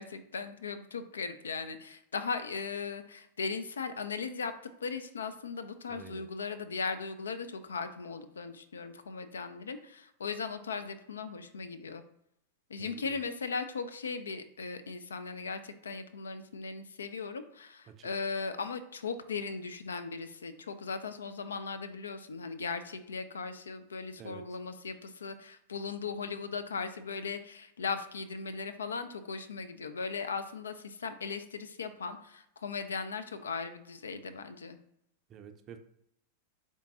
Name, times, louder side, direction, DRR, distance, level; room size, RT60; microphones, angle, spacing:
voice 1, 0.0-4.5 4.8-12.0 12.7-34.8, left 5 dB, 70° left, 10 dB, 0.3 m, -38 dB
voice 2, 5.9-6.3 12.8-13.2 17.9-18.1 24.2-24.4 35.3-35.8, right 8 dB, 30° right, 8 dB, 0.4 m, -49 dB
3.7 x 3.6 x 2.6 m, 0.78 s
figure-of-eight pair, 90°, 0 cm